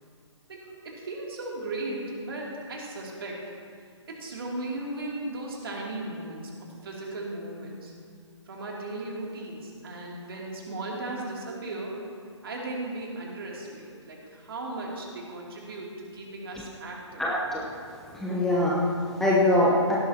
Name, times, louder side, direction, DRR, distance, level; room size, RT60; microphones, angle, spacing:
voice 1, 0.5-3.4 4.1-6.5 6.8-7.9 8.5-12.0 12.4-17.2, right 2 dB, 50° right, -2 dB, 2.8 m, -36 dB
voice 2, 17.2-20.0, left 1 dB, ahead, -6 dB, 0.8 m, -24 dB
17.0 x 12.0 x 2.9 m, 2.3 s
figure-of-eight pair, 140°, 16 cm